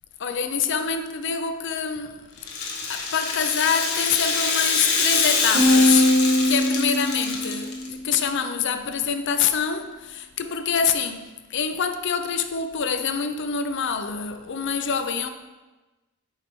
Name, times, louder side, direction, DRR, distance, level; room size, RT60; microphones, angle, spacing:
voice 1, 0.2-2.3 2.9-6.1 6.5-15.3, left 6 dB, 55° left, 0.5 m, -26 dB
Rattle (instrument), 2.4-7.9, left 4 dB, 75° left, 1.1 m, -25 dB
sound 1, 5.5-8.0, left 1 dB, 35° right, 2.2 m, -20 dB
8.2 x 5.5 x 3.1 m
head